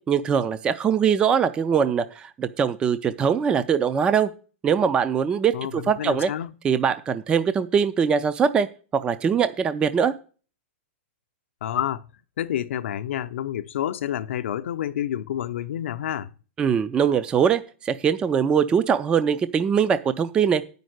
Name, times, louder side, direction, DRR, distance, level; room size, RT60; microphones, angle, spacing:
voice 1, 0.1-4.3 4.6-6.3 6.6-8.7 8.9-10.1 16.6-20.6, right 7 dB, 15° right, 0.4 m, -22 dB
voice 2, 5.5-6.5 11.6-12.0 12.4-16.3, left 11 dB, 70° left, 0.6 m, -29 dB
9.2 x 5.3 x 7.8 m
hypercardioid pair, 155°, 7 cm